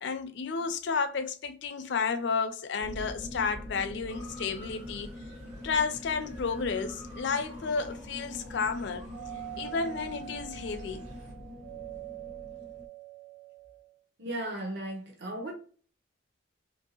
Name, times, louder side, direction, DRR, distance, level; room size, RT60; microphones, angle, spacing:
voice 1, 0.0-5.1 5.6-9.0 9.6-11.0, left 5 dB, 60° left, 0.4 m, -32 dB
sound 1, 2.8-12.9, left 1 dB, ahead, 0.5 m, -44 dB
Motor vehicle (road) / Siren, 4.1-11.3, equal, 35° right, 1.1 m, -52 dB
Doorbell, 9.1-14.0, right 16 dB, 90° right, 0.4 m, -44 dB
voice 2, 14.2-15.5, right 1 dB, 55° right, 0.7 m, -36 dB
2.9 x 2.6 x 2.8 m
head